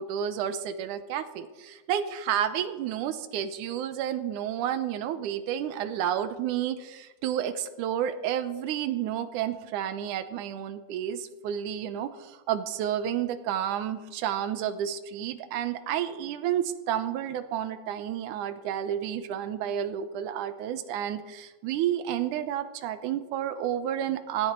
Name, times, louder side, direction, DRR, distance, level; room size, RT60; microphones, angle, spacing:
voice 1, 0.0-24.5, right 10 dB, 75° right, 11 dB, 2.1 m, -31 dB
18.0 x 13.5 x 4.4 m, 1.1 s
omnidirectional pair, 3.9 m